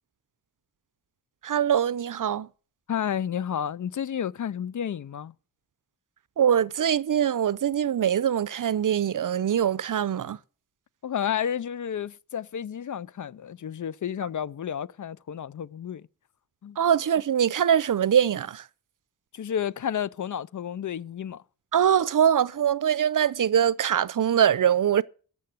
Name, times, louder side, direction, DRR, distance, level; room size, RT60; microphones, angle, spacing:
voice 1, 1.4-2.5 6.4-10.4 16.8-18.6 21.7-25.0, right 9 dB, 60° right, 0.6 m, -23 dB
voice 2, 2.9-5.3 11.0-16.1 16.6-16.8 19.3-21.4, left 9 dB, 55° left, 0.5 m, -31 dB
13.5 x 6.8 x 7.7 m
wide cardioid pair, 115°, 36 cm